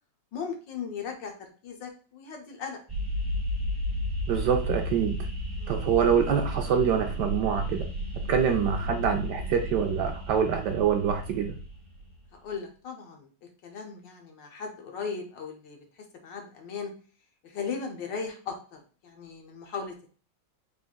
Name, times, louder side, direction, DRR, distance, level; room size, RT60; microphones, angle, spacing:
voice 1, 0.3-2.8 5.6-5.9 12.3-16.9 17.4-20.1, left 5 dB, 70° left, 3 dB, 1.5 m, -38 dB
sound 1, 2.9-12.1, equal, 15° right, 1.3 m, -33 dB
voice 2, 4.3-5.2 5.7-7.9 8.3-11.6, right 7 dB, 75° right, 4 dB, 1.0 m, -25 dB
5.0 x 3.5 x 2.3 m, 0.40 s
omnidirectional pair, 2.1 m